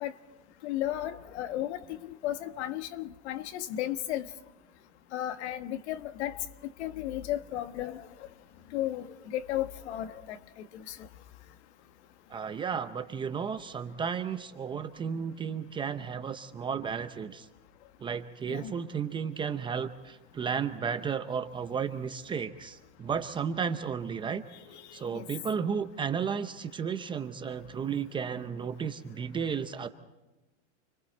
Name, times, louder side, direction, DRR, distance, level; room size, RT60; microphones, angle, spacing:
voice 1, 0.6-4.3 5.1-6.4 6.8-8.1 8.7-10.4 10.9-11.0 18.5-18.7 24.7-24.8 25.1-25.2, left 13 dB, 65° left, 1.4 m, -34 dB
voice 2, 12.3-17.5 18.0-24.4 24.9-29.9, right 6 dB, 15° right, 0.7 m, -33 dB
29.5 x 22.5 x 4.4 m
supercardioid pair, 150°, 37 cm